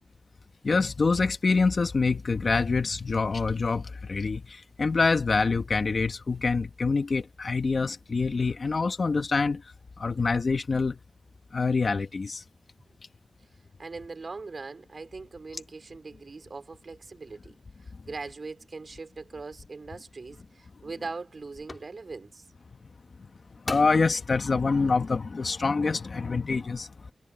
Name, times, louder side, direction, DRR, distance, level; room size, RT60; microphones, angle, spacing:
voice 1, 0.6-4.4 4.8-9.6 10.0-11.0 11.5-12.4 23.7-26.9, left 4 dB, 55° left, 2.2 m, -25 dB
voice 2, 13.8-17.6 17.8-22.4, right 4 dB, 55° right, 4.6 m, -41 dB
sound 1, 20.3-20.4 21.0-21.3 21.7-21.9 23.1-23.2 23.6-24.1 24.7-24.8, left 2 dB, 35° left, 4.0 m, -37 dB
wide cardioid pair, 90°, 0 cm